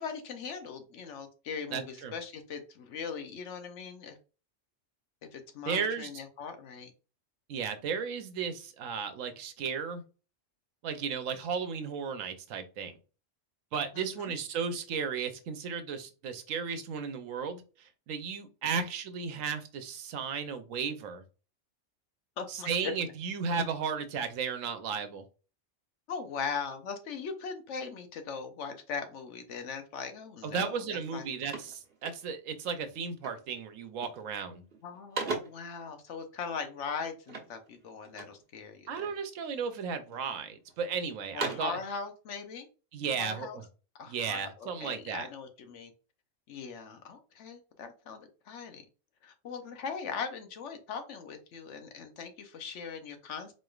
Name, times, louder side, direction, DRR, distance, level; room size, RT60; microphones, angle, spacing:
voice 1, 0.0-4.2 5.2-6.9 13.9-14.3 18.7-18.8 22.4-22.9 26.1-31.2 34.8-38.9 41.3-42.7 43.2-43.6 44.0-45.9 46.5-48.8 49.2-53.5, left 6 dB, 70° left, 1.0 m, -40 dB
voice 2, 1.7-2.1 5.7-6.1 7.5-10.0 10.8-12.9 13.7-21.2 22.5-25.2 30.4-34.6 38.9-41.8 42.9-43.6 44.1-45.3, right 6 dB, 90° right, 1.1 m, -34 dB
sound 1, 30.7-30.8 31.0-32.6 33.2-33.5 33.9-34.4 34.7-35.7 37.3-38.5 39.0-39.6 40.1-40.8 41.2-41.8, right 4 dB, 50° right, 1.2 m, -40 dB
4.1 x 3.2 x 2.3 m
omnidirectional pair, 1.3 m